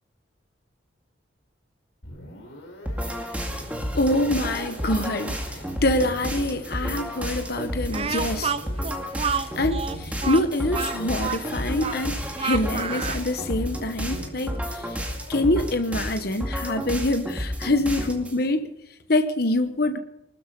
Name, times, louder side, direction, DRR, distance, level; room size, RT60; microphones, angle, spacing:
sound 1, 2.0-16.1, left 1 dB, 75° left, 4.3 m, -44 dB
sound 2, 2.8-18.4, equal, 5° right, 2.2 m, -31 dB
voice 1, 3.9-8.6 9.6-18.7 19.1-20.0, left 1 dB, 50° left, 8 dB, 1.1 m, -25 dB
Speech, 7.9-13.3, right 6 dB, 30° right, 0.5 m, -30 dB
20.5 x 13.0 x 5.3 m, 0.87 s
head